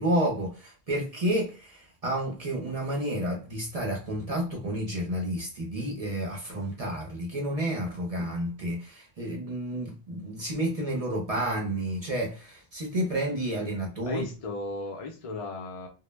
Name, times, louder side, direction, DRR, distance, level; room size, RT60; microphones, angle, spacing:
voice 1, 0.0-14.2, right 1 dB, 45° right, 0.5 m, -30 dB
voice 2, 14.1-15.9, left 3 dB, 40° left, 0.5 m, -35 dB
2.1 x 2.0 x 3.1 m
omnidirectional pair, 1.2 m